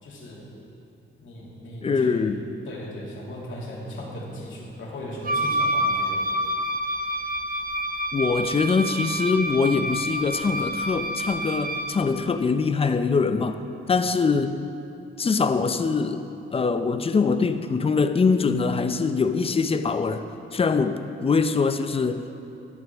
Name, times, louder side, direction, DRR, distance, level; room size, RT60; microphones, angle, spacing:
voice 1, 0.0-0.5 1.2-2.1 2.7-6.2, left 1 dB, 70° left, -3 dB, 2.7 m, -37 dB
voice 2, 1.8-2.4 8.1-13.6 13.9-14.6 15.2-16.2 16.5-20.2 20.5-22.2, left 4 dB, 25° left, 9 dB, 0.5 m, -23 dB
Wind instrument woodwind instrument, 5.2-12.0, right 1 dB, 40° right, 0.8 m, -28 dB
13.5 x 11.0 x 3.5 m, 2.7 s
cardioid pair, 105°, 21 cm